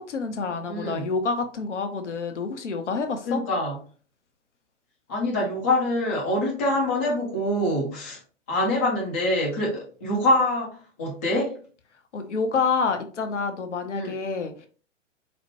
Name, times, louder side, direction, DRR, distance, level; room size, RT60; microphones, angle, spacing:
voice 1, 0.0-3.4 12.1-14.7, left 4 dB, 70° left, 6 dB, 0.7 m, -28 dB
voice 2, 0.7-1.1 3.3-3.8 5.1-8.2 8.5-11.5 13.9-14.1, left 1 dB, 15° left, -2 dB, 0.3 m, -25 dB
4.1 x 2.1 x 2.8 m, 0.40 s
figure-of-eight pair, 110°, 37 cm